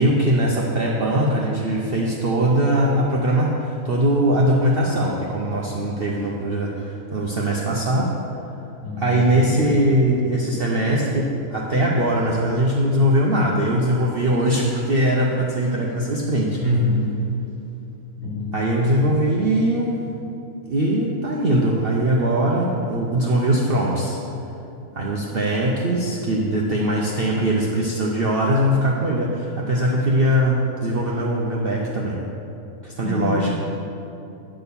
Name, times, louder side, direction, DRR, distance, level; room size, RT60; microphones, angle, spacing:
voice 1, 0.0-8.1 9.0-16.6 18.5-19.9 20.6-24.2 24.9-32.2 32.8-33.6, right 1 dB, 50° right, -3 dB, 0.8 m, -21 dB
voice 2, 8.8-9.8 16.6-17.3 18.2-19.2 33.0-33.4, left 1 dB, 25° left, -5 dB, 1.6 m, -25 dB
8.8 x 4.3 x 6.9 m, 2.9 s
omnidirectional pair, 1.5 m